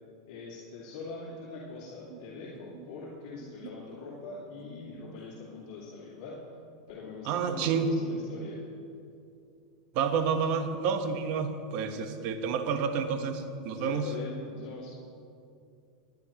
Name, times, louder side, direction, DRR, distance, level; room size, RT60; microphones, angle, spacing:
voice 1, 0.2-6.5 6.9-8.7 13.7-14.9, left 3 dB, 60° left, -6 dB, 2.3 m, -42 dB
voice 2, 7.3-7.9 9.9-14.1, right 6 dB, 50° right, 7 dB, 1.1 m, -29 dB
19.0 x 10.5 x 3.0 m, 2.6 s
supercardioid pair, 140°, 3 cm